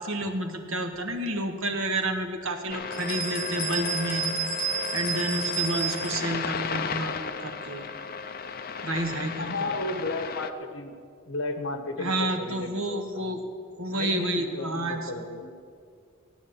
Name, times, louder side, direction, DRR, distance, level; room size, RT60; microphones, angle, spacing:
voice 1, 0.0-4.3 4.9-7.9 8.8-9.5 12.0-13.4 13.8-15.1, right 1 dB, 70° right, 5 dB, 1.6 m, -30 dB
sound 1, 2.7-10.5, left 5 dB, 45° left, 0.7 m, -34 dB
sound 2, 2.9-6.2, right 4 dB, 25° left, 3.6 m, -31 dB
voice 2, 9.4-10.9 11.3-13.4 13.9-15.5, left 2 dB, 65° left, 8 dB, 1.3 m, -33 dB
16.0 x 9.6 x 7.2 m, 2.3 s
head